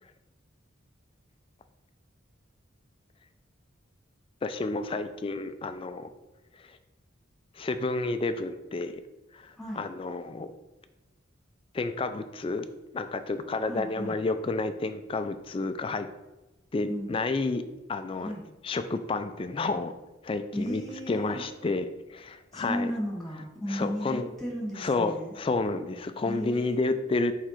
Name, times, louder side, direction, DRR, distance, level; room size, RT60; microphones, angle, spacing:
voice 1, 4.4-6.1 6.6-6.8 7.6-8.9 9.3-10.5 11.7-12.7 12.9-16.1 16.7-17.6 17.9-18.3 18.6-19.9 20.2-20.8 21.1-21.8 22.1-22.9 23.7-24.2 24.8-27.3, left 3 dB, 25° left, 9 dB, 0.3 m, -30 dB
voice 2, 13.7-14.2 16.9-17.2 18.1-18.4 20.5-21.4 22.5-25.3 26.2-27.0, equal, ahead, -5 dB, 1.9 m, -35 dB
6.7 x 3.6 x 4.4 m, 1.1 s
head